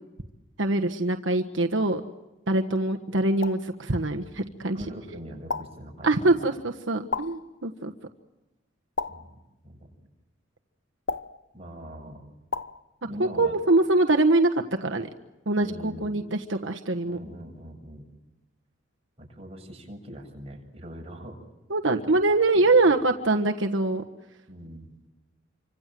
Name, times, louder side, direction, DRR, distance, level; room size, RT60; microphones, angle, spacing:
voice 1, 0.6-2.0 2.5-4.8 6.0-7.9 13.2-15.1 15.5-17.2 21.7-24.0, right 2 dB, 80° right, 4 dB, 1.4 m, -23 dB
sound 1, 3.4-3.7 5.5-5.9 7.1-7.5 9.0-9.4 11.1-11.5 12.5-12.8, left 4 dB, 70° left, 1.0 m, -32 dB
voice 2, 4.7-6.5 9.1-9.4 9.6-10.0 11.5-12.2 13.1-13.5 15.6-16.1 17.0-18.1 19.2-21.4 22.1-22.2 22.5-22.9 24.5-24.9, equal, 30° right, 2 dB, 7.5 m, -42 dB
28.5 x 25.5 x 7.7 m, 1.1 s
head